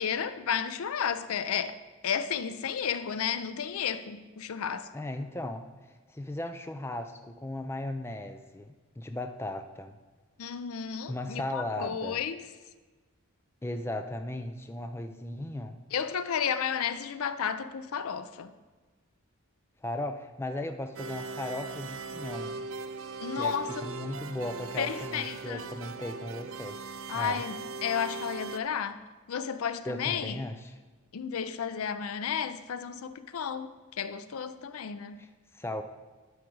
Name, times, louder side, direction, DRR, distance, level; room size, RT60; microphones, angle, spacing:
voice 1, 0.0-1.8 2.0-4.9 10.4-12.4 15.9-18.5 23.2-23.7 24.8-25.6 27.1-29.0 29.3-30.4 31.1-35.2, left 7 dB, 75° left, 0.5 m, -32 dB
voice 2, 4.9-10.0 11.1-12.2 13.6-15.8 19.8-22.6 23.4-26.8 27.1-27.4 29.9-30.8 35.2-35.8, left 1 dB, 10° left, 0.4 m, -37 dB
sound 1, 21.0-28.6, right 4 dB, 60° right, 0.4 m, -39 dB
11.5 x 4.9 x 4.6 m
head